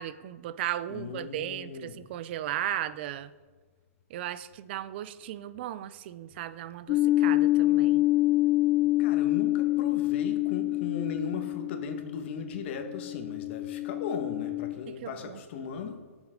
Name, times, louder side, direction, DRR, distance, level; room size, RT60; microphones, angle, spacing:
voice 1, 0.0-3.3 4.1-8.0 14.9-15.4, right 12 dB, 45° right, 0.5 m, -36 dB
voice 2, 0.9-2.0 9.0-16.1, left 6 dB, 45° left, 1.6 m, -37 dB
sound 1, 6.9-14.7, left 17 dB, 30° left, 0.7 m, -26 dB
18.5 x 7.2 x 3.8 m
hypercardioid pair, 145°, 8 cm